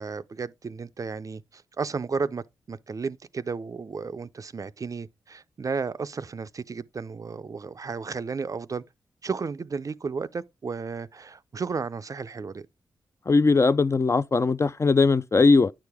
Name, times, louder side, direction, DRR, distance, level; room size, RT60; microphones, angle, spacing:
voice 1, 0.0-8.8 9.2-12.7, right 5 dB, 40° right, 0.4 m, -33 dB
voice 2, 13.3-15.7, left 4 dB, 35° left, 0.4 m, -20 dB
9.0 x 4.9 x 3.4 m
cardioid pair, 60°, 8 cm